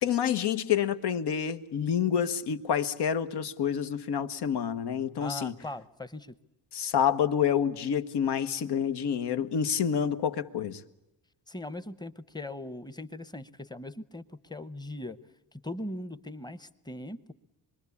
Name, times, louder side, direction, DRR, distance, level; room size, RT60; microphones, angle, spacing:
voice 1, 0.0-5.5 6.7-10.8, left 8 dB, 80° left, 9 dB, 1.5 m, -28 dB
voice 2, 5.2-6.3 11.5-15.2 15.6-17.3, left 1 dB, 10° left, 14 dB, 0.9 m, -40 dB
26.0 x 23.0 x 8.4 m, 0.95 s
wide cardioid pair, 160°, 39 cm